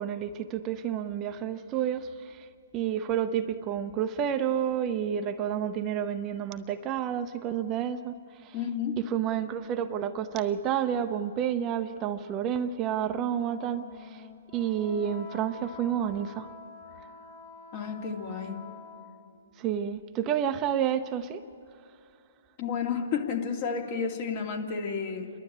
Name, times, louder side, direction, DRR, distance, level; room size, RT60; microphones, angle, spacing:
voice 1, 0.0-2.5 2.7-8.1 8.4-8.5 9.0-14.2 14.5-16.5 19.6-21.4, right 9 dB, 25° right, 9 dB, 0.7 m, -30 dB
voice 2, 8.5-8.9 17.7-18.6 22.6-25.3, left 6 dB, 45° left, 2 dB, 2.6 m, -31 dB
Wind instrument woodwind instrument, 13.1-19.3, left 3 dB, 60° left, 5.9 m, -47 dB
29.5 x 12.0 x 8.8 m, 2.4 s
hypercardioid pair, 135°, 0 cm